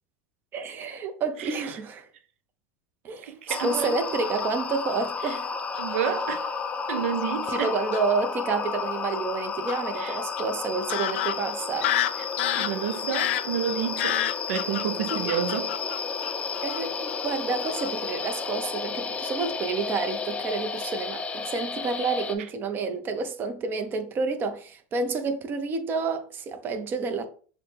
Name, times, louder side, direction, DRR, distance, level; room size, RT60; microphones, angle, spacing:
voice 1, 0.5-2.1 3.0-5.5 7.5-11.9 15.1-15.4 16.6-27.2, right 4 dB, 35° right, 0.7 m, -29 dB
voice 2, 3.2-4.0 5.2-5.4 5.8-6.5 6.9-7.7 10.0-10.2 12.2-12.3 12.6-15.7, right 9 dB, 85° right, 0.4 m, -30 dB
sound 1, 3.5-22.4, left 5 dB, 20° left, 0.4 m, -32 dB
Fowl / Bird vocalization bird call bird song, 4.2-4.9 5.7-6.4 7.2-7.3 7.6-8.0 9.7-9.8 10.4-10.5 10.9-16.8 17.1-17.3 17.6-17.9 18.2-18.5, left 12 dB, 80° left, 0.4 m, -30 dB
6.5 x 2.2 x 3.3 m
supercardioid pair, 125°, 6 cm